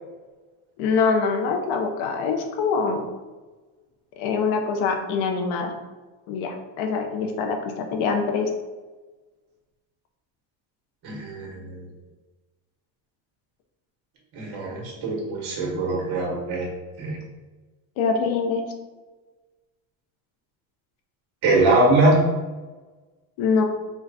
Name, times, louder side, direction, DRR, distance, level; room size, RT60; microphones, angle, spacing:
voice 1, 0.8-3.1 4.2-5.7 6.3-8.5 18.0-18.6 23.4-23.6, left 5 dB, 90° left, 4 dB, 0.8 m, -24 dB
voice 2, 11.0-11.9 14.3-16.7 17.0-17.2 21.4-22.2, right 2 dB, 55° right, -2 dB, 1.4 m, -22 dB
4.6 x 2.3 x 4.1 m, 1.3 s
cardioid pair, 170°, 48 cm